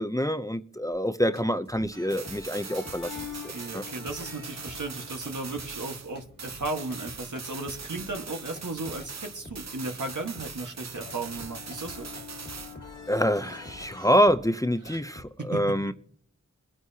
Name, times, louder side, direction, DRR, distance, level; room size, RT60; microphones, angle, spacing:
voice 1, 0.0-3.1 3.7-3.8 13.1-15.9, equal, 10° left, 0.6 m, -26 dB
sound 1, 0.9-9.2 9.4-15.3, left 1 dB, 35° left, 1.6 m, -49 dB
sound 2, 1.9-14.1, left 6 dB, 80° left, 1.4 m, -47 dB
sound 3, 2.1-6.1 6.4-12.8, right 5 dB, 60° right, 0.7 m, -41 dB
voice 2, 3.5-12.1 14.8-15.0 15.4-15.8, right 2 dB, 75° right, 1.6 m, -35 dB
23.5 x 9.4 x 2.8 m
wide cardioid pair, 45°, 31 cm